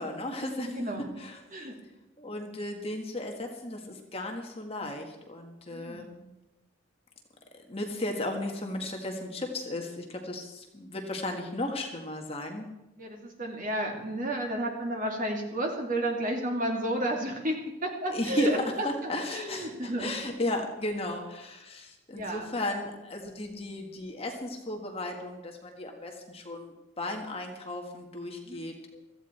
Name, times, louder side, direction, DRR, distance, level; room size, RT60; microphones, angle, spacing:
voice 1, 0.0-1.4 2.2-6.1 7.7-12.7 18.1-18.5 18.8-29.0, left 1 dB, 30° left, 2 dB, 1.7 m, -35 dB
voice 2, 0.6-1.1 1.5-1.7 5.7-6.2 13.0-20.1 22.1-22.5 28.5-28.7, right 1 dB, 40° right, 2 dB, 2.3 m, -32 dB
16.0 x 14.5 x 4.4 m, 0.98 s
head